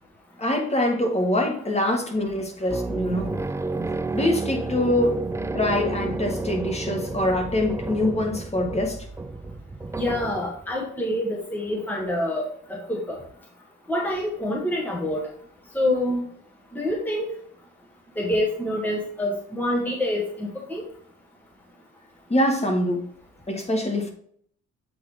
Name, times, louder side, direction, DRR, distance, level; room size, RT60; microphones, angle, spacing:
voice 1, 0.4-3.3 4.1-5.2 5.5-9.1 22.3-23.0 23.5-24.1, left 1 dB, 20° left, 2 dB, 1.6 m, -24 dB
sound 1, 2.7-10.7, right 3 dB, 10° right, 0.3 m, -31 dB
voice 2, 9.9-13.2 13.9-15.2 15.7-16.2 16.7-17.3 18.2-20.8, left 1 dB, 5° left, -1 dB, 1.2 m, -26 dB
7.7 x 3.8 x 3.4 m, 0.62 s
cardioid pair, 90°, 30 cm